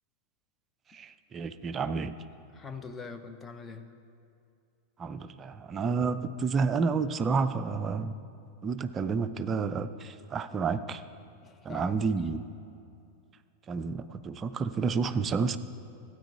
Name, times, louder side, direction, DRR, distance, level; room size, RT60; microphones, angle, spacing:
voice 1, 0.9-2.1 5.0-8.2 8.6-11.0 11.6-12.4 13.7-15.6, right 5 dB, 25° right, 11 dB, 0.4 m, -30 dB
voice 2, 2.5-3.9 11.4-12.2, left 4 dB, 20° left, 8 dB, 0.7 m, -43 dB
13.0 x 8.9 x 4.7 m, 2.6 s
figure-of-eight pair, 90°, 0 cm